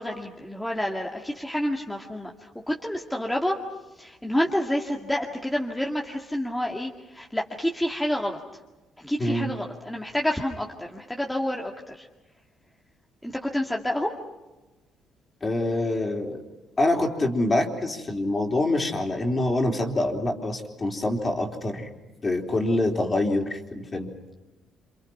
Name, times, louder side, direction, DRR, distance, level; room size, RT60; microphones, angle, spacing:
voice 1, 0.0-3.6 4.0-8.4 9.0-12.1 13.2-14.1, left 1 dB, 5° left, -1 dB, 2.1 m, -29 dB
voice 2, 15.4-16.4 16.8-21.9 22.2-24.1, left 1 dB, 25° left, 3 dB, 3.9 m, -25 dB
28.5 x 27.5 x 5.9 m, 1.1 s
cardioid pair, 130°, 0 cm